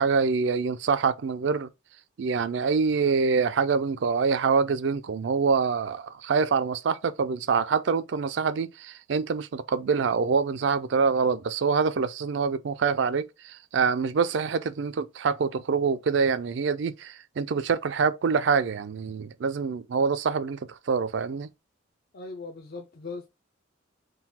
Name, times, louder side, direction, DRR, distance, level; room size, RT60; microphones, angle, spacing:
voice 1, 0.0-1.7 2.2-20.6 20.9-21.5, right 5 dB, 60° right, 0.4 m, -25 dB
voice 2, 22.1-23.3, left 3 dB, 50° left, 0.6 m, -39 dB
3.8 x 2.3 x 4.2 m
head